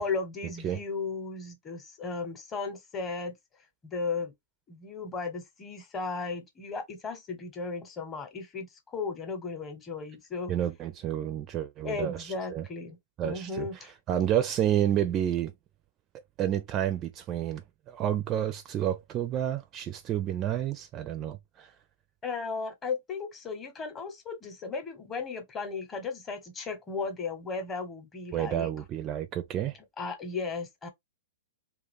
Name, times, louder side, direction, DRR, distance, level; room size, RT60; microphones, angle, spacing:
voice 1, 0.0-3.3 3.8-4.3 4.7-10.5 11.8-13.0 13.2-13.9 22.2-28.7 30.0-30.9, left 4 dB, 20° left, 0.9 m, -35 dB
voice 2, 10.5-12.7 13.2-13.7 14.1-15.5 16.4-21.7 28.3-29.8, right 11 dB, 30° right, 0.4 m, -30 dB
2.4 x 2.4 x 3.4 m
figure-of-eight pair, 110°, 0 cm